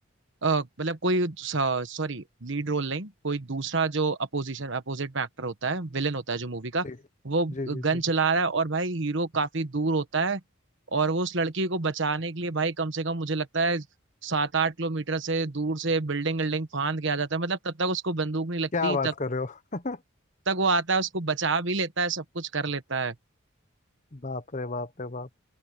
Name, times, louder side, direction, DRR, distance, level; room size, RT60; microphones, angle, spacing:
voice 1, 0.4-6.9 7.2-10.4 10.9-13.8 14.2-19.1 20.5-23.1, right 3 dB, 60° right, 1.3 m, -27 dB
voice 2, 7.5-8.0 18.7-20.0 24.1-25.3, left 3 dB, 35° left, 1.0 m, -31 dB
open air
head